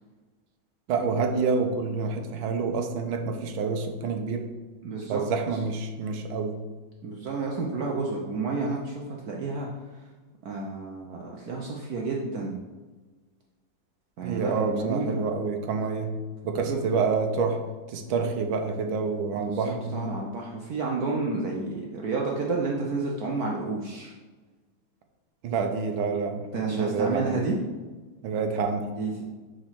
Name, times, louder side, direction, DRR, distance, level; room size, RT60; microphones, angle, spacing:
voice 1, 0.9-4.5 5.1-6.6 14.2-16.1 16.4-17.6 17.9-20.2 25.4-27.4 28.2-28.9, right 4 dB, 80° right, 5 dB, 1.5 m, -28 dB
voice 2, 4.8-5.2 7.0-9.7 10.4-12.6 14.2-15.2 16.7-16.8 19.4-24.1 26.5-27.6 29.0-29.3, right 3 dB, 65° right, -1 dB, 0.9 m, -30 dB
4.9 x 4.3 x 5.7 m, 1.3 s
omnidirectional pair, 2.2 m